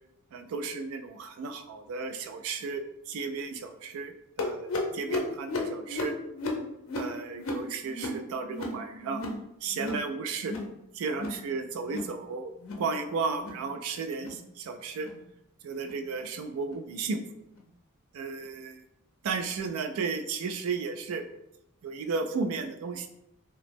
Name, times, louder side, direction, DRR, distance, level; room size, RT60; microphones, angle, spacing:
voice 1, 0.3-6.2 6.9-9.2 9.6-10.6 10.9-12.5 12.8-15.1 15.6-17.2 18.1-18.8 19.2-21.3 21.8-23.1, right 4 dB, 75° right, 8 dB, 0.3 m, -34 dB
sound 1, 4.4-9.4 9.7-10.1 10.4-10.7 11.1-11.4 11.8-12.1 12.5-12.9 13.3-13.6 14.1-14.4 15.0-15.2 15.8-16.0 16.7-16.8 17.5-17.6, left 2 dB, 60° left, 0.5 m, -35 dB
2.8 x 2.0 x 3.3 m, 0.83 s
head